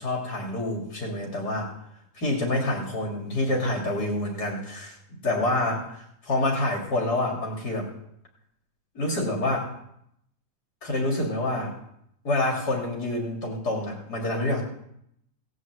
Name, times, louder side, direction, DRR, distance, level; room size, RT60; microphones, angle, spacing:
voice 1, 0.0-1.7 2.2-4.9 5.2-7.9 9.0-9.7 10.8-11.8 12.2-14.6, left 1 dB, 75° left, 0 dB, 3.5 m, -27 dB
17.5 x 6.4 x 8.0 m, 0.74 s
omnidirectional pair, 1.8 m